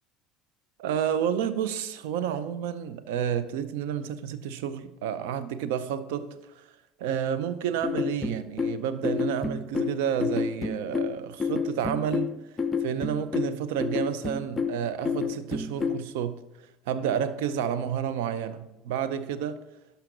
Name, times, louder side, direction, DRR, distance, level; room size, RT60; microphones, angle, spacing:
voice 1, 0.8-6.7 7.0-12.3 12.8-16.4 16.9-19.6, right 8 dB, 75° right, 0.6 m, -30 dB
sound 1, 7.8-16.1, left 5 dB, 30° left, 0.5 m, -29 dB
11.5 x 5.7 x 3.8 m
hypercardioid pair, 75°, 0 cm